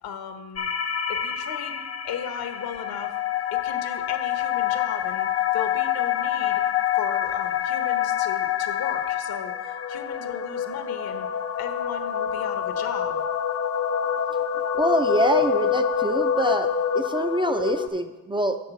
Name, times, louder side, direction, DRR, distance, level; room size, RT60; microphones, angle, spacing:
voice 1, 0.0-0.7 1.1-3.1 3.5-6.6 6.9-11.3 11.6-13.2, left 7 dB, 75° left, 7 dB, 1.2 m, -36 dB
sound 1, 0.6-17.9, left 9 dB, 40° left, 0.6 m, -26 dB
voice 2, 14.7-16.7 16.9-18.6, right 1 dB, 15° right, 7 dB, 0.4 m, -25 dB
10.5 x 3.9 x 7.0 m, 1.2 s
cardioid pair, 100°, 36 cm